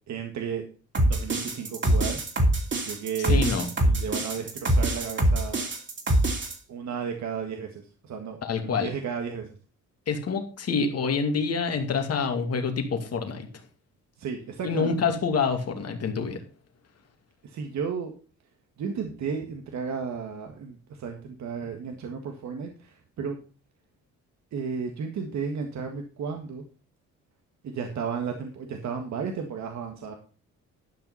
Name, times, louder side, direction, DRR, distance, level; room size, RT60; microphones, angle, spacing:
voice 1, 0.1-0.6 1.0-2.2 2.9-3.4 3.8-5.6 6.7-9.5 14.2-15.0 17.4-18.1 18.8-23.4 24.5-26.6 27.6-30.1, right 6 dB, 65° right, 4 dB, 1.8 m, -33 dB
sound 1, 0.9-6.5, right 1 dB, 40° right, 3.0 m, -24 dB
voice 2, 3.2-3.7 8.4-8.9 10.1-13.5 14.6-16.4, left 5 dB, 55° left, 5 dB, 2.5 m, -27 dB
12.0 x 6.0 x 5.5 m, 0.37 s
cardioid pair, 90°, 30 cm